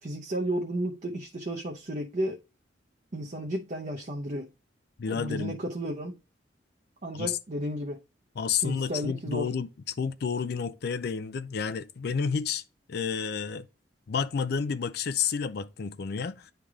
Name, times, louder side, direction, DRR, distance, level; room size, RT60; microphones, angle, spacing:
voice 1, 0.0-2.4 3.1-4.5 5.1-6.1 7.0-8.0 8.6-9.5, equal, 40° right, 0.7 m, -33 dB
voice 2, 5.0-5.6 7.1-7.4 8.4-12.6 12.9-13.7 14.1-16.5, left 6 dB, 55° left, 0.4 m, -30 dB
10.0 x 3.4 x 3.5 m
head